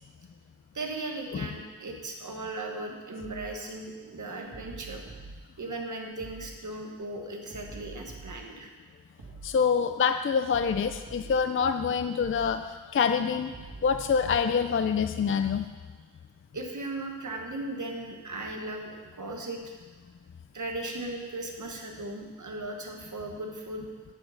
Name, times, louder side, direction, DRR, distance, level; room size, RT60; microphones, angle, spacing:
voice 1, 0.7-5.0 5.6-8.7 16.5-19.7 20.5-23.9, right 2 dB, 50° right, 1 dB, 1.4 m, -37 dB
sound 1, 3.2-3.5 4.5-5.4 6.2-6.5 7.5-8.4 9.2-9.5 10.5-11.4 12.2-12.5 13.5-14.4, right 3 dB, 70° right, 2.5 m, -45 dB
voice 2, 9.4-13.6 13.8-15.7, left 6 dB, 35° left, 9 dB, 0.4 m, -26 dB
9.9 x 6.6 x 5.8 m, 1.3 s
wide cardioid pair, 130°, 38 cm